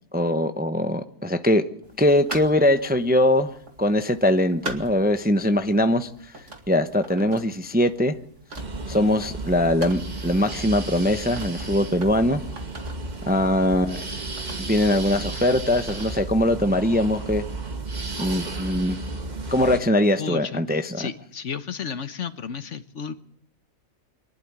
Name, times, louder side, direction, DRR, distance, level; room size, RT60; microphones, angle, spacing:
voice 1, 0.1-1.6 2.0-3.5 3.8-6.1 6.7-8.1 8.9-12.4 13.3-14.0 14.6-17.4 18.2-19.0 19.5-21.1, left 1 dB, 10° right, 8 dB, 0.7 m, -21 dB
sound 1, 1.8-17.2, right 2 dB, 60° right, 2.6 m, -44 dB
sound 2, 8.6-19.8, right 2 dB, 35° right, 1.4 m, -33 dB
voice 2, 20.2-20.6 20.9-23.1, left 6 dB, 60° left, 11 dB, 1.3 m, -32 dB
24.5 x 11.5 x 9.7 m, 0.69 s
omnidirectional pair, 1.5 m